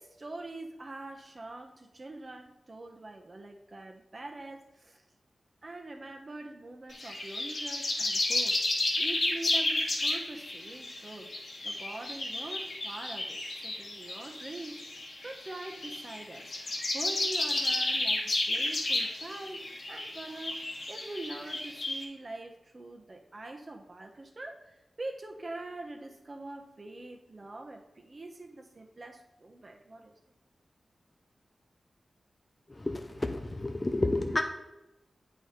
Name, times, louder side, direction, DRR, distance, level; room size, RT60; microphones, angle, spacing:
voice 1, 0.0-5.0 5.6-16.5 16.9-20.6 20.9-30.1, right 2 dB, 40° right, 3 dB, 1.2 m, -44 dB
sound 1, 6.9-22.0, left 2 dB, 70° left, 1.9 m, -32 dB
voice 2, 32.7-34.4, left 2 dB, 30° left, 5 dB, 0.6 m, -30 dB
8.5 x 4.9 x 4.0 m, 0.98 s
wide cardioid pair, 70°, 0 cm